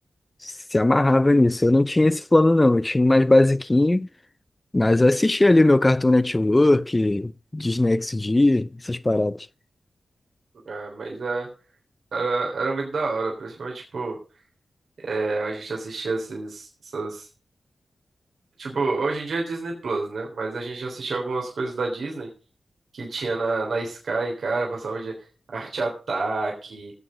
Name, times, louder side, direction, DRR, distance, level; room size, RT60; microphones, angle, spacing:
voice 1, 0.4-4.1 4.7-9.5, left 2 dB, 25° left, 0.5 m, -19 dB
voice 2, 10.7-11.5 12.1-14.2 15.0-17.3 18.6-22.3 22.9-25.1 25.5-26.9, right 3 dB, 80° right, 3.5 m, -28 dB
16.0 x 7.7 x 5.1 m
cardioid pair, 50°, 0 cm